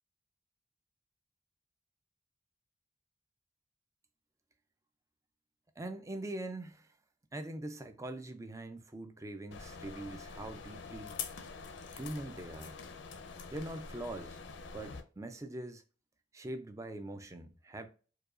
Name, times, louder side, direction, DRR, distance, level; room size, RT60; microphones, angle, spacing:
voice 1, 5.8-6.9 7.3-11.2 11.9-12.8 13.5-14.4 14.7-15.8 16.3-17.9, right 1 dB, 15° right, 0.4 m, -42 dB
sound 1, 9.5-15.0, left 5 dB, 75° left, 0.6 m, -45 dB
4.7 x 2.3 x 2.5 m
head